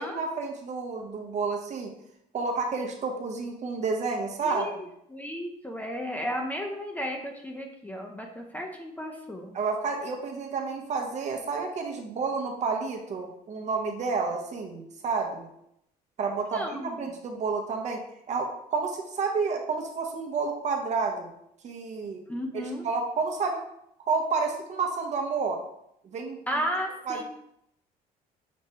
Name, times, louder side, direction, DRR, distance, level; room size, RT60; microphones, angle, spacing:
voice 1, 0.0-1.9 2.3-4.7 9.5-15.5 16.2-18.0 18.3-21.3 21.6-22.2 22.5-23.6 24.1-25.6 26.0-26.4 27.1-27.2, right 4 dB, 45° right, 2 dB, 0.7 m, -30 dB
voice 2, 4.4-9.6 16.5-17.1 22.3-22.9 26.5-27.2, equal, 10° left, 1 dB, 0.5 m, -34 dB
6.1 x 2.1 x 2.8 m, 0.76 s
cardioid pair, 110°, 17 cm